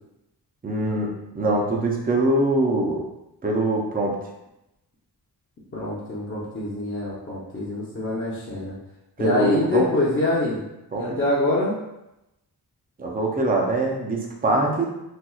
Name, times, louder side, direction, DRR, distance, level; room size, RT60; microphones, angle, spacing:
voice 1, 0.6-1.1 1.3-3.0 3.4-4.2 9.2-9.9 10.9-11.2 13.0-14.9, right 2 dB, 20° right, 0 dB, 0.5 m, -23 dB
voice 2, 5.7-8.8 9.2-10.6 10.9-11.7, left 2 dB, 30° left, -7 dB, 0.7 m, -25 dB
4.2 x 2.3 x 2.3 m, 0.90 s
wide cardioid pair, 120°, 41 cm